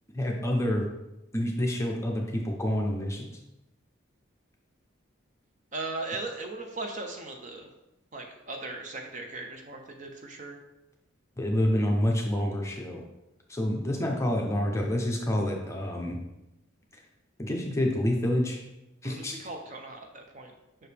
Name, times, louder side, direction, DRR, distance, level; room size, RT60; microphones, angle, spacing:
voice 1, 0.1-0.9 1.3-3.3 11.4-13.0 13.5-16.2 17.4-18.6 19.0-19.3, left 1 dB, 15° left, 0 dB, 0.6 m, -28 dB
voice 2, 5.7-7.7 8.1-10.6 19.0-20.5, right 2 dB, 35° right, 3 dB, 0.6 m, -38 dB
5.7 x 4.9 x 3.4 m, 0.93 s
head